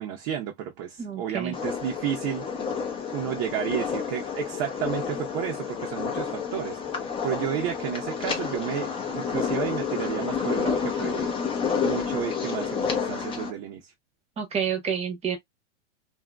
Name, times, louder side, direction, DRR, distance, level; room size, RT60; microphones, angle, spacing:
voice 1, 0.0-2.4 3.1-11.3 11.8-13.9, right 10 dB, 40° right, 0.7 m, -32 dB
voice 2, 1.0-1.5 14.4-15.4, right 7 dB, 15° right, 1.0 m, -29 dB
sound 1, 1.5-13.5, left 6 dB, 15° left, 0.7 m, -30 dB
2.8 x 2.6 x 2.2 m
supercardioid pair, 140°, 36 cm